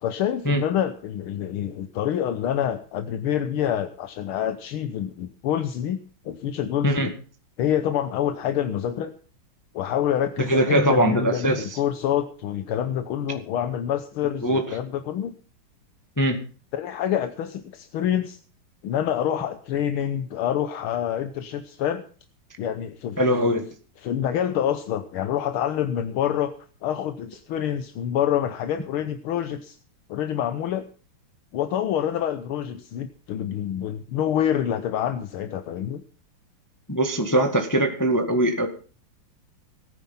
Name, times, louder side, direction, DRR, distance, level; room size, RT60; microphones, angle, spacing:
voice 1, 0.0-7.1 7.6-9.1 9.7-15.4 16.7-18.4 18.8-22.0 22.6-23.2 24.0-26.5 26.8-29.8 30.1-30.9 31.5-36.0, left 10 dB, 80° left, 9 dB, 1.8 m, -27 dB
voice 2, 10.5-11.8 14.4-14.7 16.2-16.4 23.2-23.6 36.9-38.7, right 1 dB, 10° left, 5 dB, 1.5 m, -21 dB
18.0 x 10.0 x 5.8 m, 0.40 s
omnidirectional pair, 2.3 m